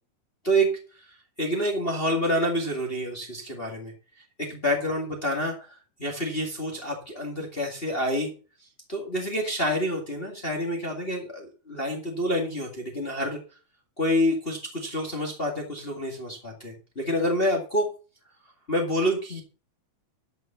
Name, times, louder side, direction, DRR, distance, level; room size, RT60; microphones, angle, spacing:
voice 1, 1.4-3.9 4.4-5.7 6.0-8.3 8.9-13.4 14.0-17.9 18.7-19.4, equal, 25° left, 1 dB, 1.2 m, -27 dB
12.5 x 5.2 x 6.6 m, 0.36 s
omnidirectional pair, 4.2 m